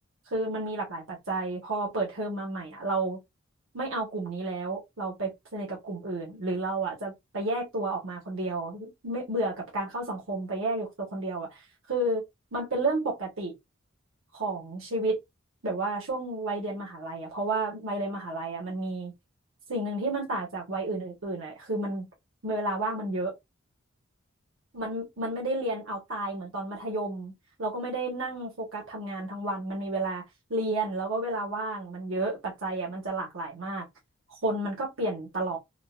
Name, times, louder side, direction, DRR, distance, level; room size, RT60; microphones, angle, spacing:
voice 1, 0.3-3.2 3.7-12.2 12.5-13.5 14.3-15.2 15.6-19.1 19.7-22.1 22.4-23.3 24.7-27.3 27.6-30.2 30.5-33.9 34.4-35.6, right 2 dB, 70° right, 1.2 m, -31 dB
3.7 x 2.2 x 2.4 m
head